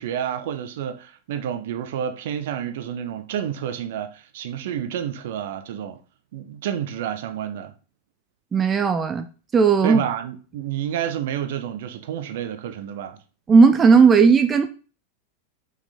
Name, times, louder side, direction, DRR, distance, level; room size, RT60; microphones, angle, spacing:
voice 1, 0.0-6.0 6.3-7.7 9.8-13.2, right 9 dB, 55° right, 1.0 m, -29 dB
voice 2, 8.5-9.3 9.5-10.0 13.5-14.7, right 5 dB, 20° right, 0.6 m, -15 dB
5.9 x 5.8 x 4.2 m
figure-of-eight pair, 90°, 0 cm